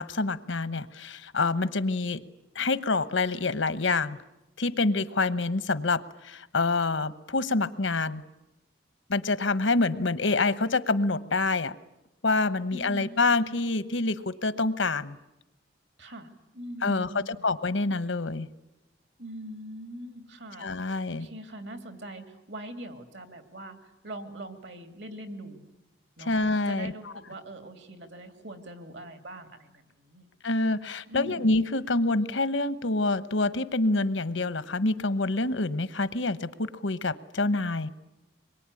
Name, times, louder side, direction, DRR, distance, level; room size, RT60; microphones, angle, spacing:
voice 1, 0.0-2.2 2.5-4.2 4.6-8.2 9.1-11.7 12.2-15.2 16.8-18.5 20.6-21.3 26.3-27.1 30.4-37.9, left 3 dB, 85° left, 14 dB, 1.1 m, -27 dB
voice 2, 12.7-13.0 16.0-17.5 19.2-25.6 26.2-26.3 26.7-30.3 31.1-31.6, right 1 dB, 70° right, 7 dB, 2.8 m, -42 dB
25.5 x 22.5 x 9.8 m, 0.93 s
head